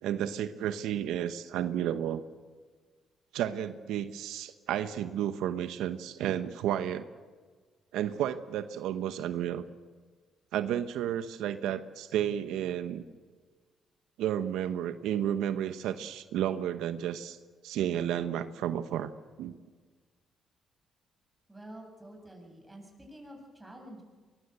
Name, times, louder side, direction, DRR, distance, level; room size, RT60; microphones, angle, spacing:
voice 1, 0.0-2.3 3.3-7.0 7.9-9.6 10.5-13.0 14.2-17.4 17.6-19.1 19.4-19.5, right 10 dB, 90° right, 11 dB, 0.9 m, -32 dB
voice 2, 21.5-24.0, right 1 dB, 10° right, 1 dB, 7.6 m, -48 dB
23.0 x 21.5 x 8.1 m, 1.5 s
cardioid pair, 90°, 0 cm